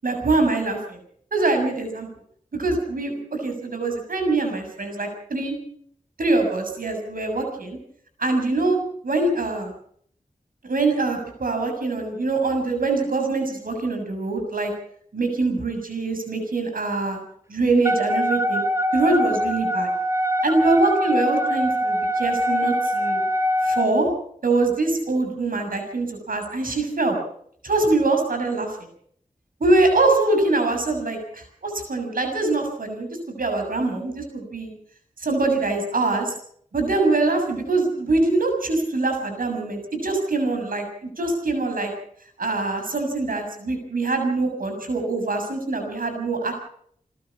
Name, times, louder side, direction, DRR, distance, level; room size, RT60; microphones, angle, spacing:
voice 1, 0.0-1.0 1.3-2.1 2.5-5.6 6.2-7.8 8.2-8.8 9.0-9.7 10.6-14.7 15.1-17.2 17.5-18.6 18.9-19.9 20.4-23.2 23.6-24.1 24.4-27.2 27.6-28.7 29.6-34.7 35.2-36.3 36.7-41.9 42.4-46.5, right 3 dB, 75° right, 4 dB, 6.8 m, -23 dB
Wind instrument woodwind instrument, 17.8-23.9, equal, 20° right, 2.0 m, -23 dB
29.5 x 12.5 x 7.3 m, 0.64 s
wide cardioid pair, 85°, 14 cm